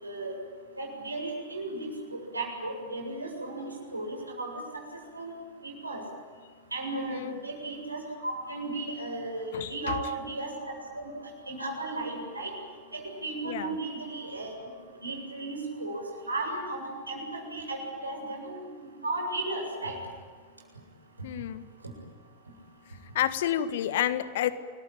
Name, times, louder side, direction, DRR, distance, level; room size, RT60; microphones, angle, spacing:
voice 1, 0.0-0.4 0.8-4.8 5.1-5.3 5.6-6.0 6.7-11.1 11.5-12.5 12.9-14.5 15.0-18.7 19.0-20.0, right 2 dB, 80° right, 0 dB, 7.9 m, -35 dB
voice 2, 6.9-7.3 9.5-9.9 13.4-13.8 21.2-21.7 23.1-24.5, left 11 dB, 55° left, 12 dB, 1.6 m, -30 dB
29.5 x 21.5 x 9.1 m, 1.5 s
figure-of-eight pair, 90°, 0 cm